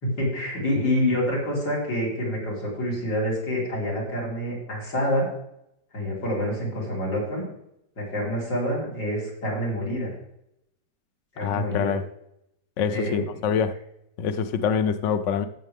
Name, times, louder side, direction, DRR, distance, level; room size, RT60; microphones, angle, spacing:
voice 1, 0.0-5.3 5.9-7.4 8.0-10.1 11.3-11.9 12.9-13.4, equal, 80° left, 5.0 m, -27 dB
voice 2, 11.4-12.0 12.8-13.7 14.2-15.5, left 7 dB, 60° left, 0.8 m, -25 dB
15.0 x 7.4 x 3.6 m
omnidirectional pair, 1.9 m